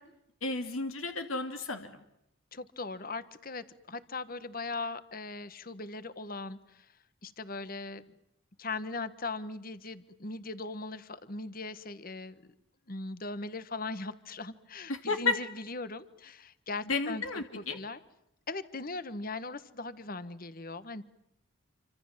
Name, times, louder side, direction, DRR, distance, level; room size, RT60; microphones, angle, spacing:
voice 1, 0.4-2.0 14.9-15.4 16.9-17.8, left 3 dB, 90° left, 6 dB, 2.7 m, -32 dB
voice 2, 2.5-6.9 7.2-8.0 8.6-12.4 12.9-18.0 18.5-21.0, left 3 dB, 45° left, 14 dB, 1.4 m, -39 dB
28.0 x 26.0 x 7.5 m, 0.80 s
head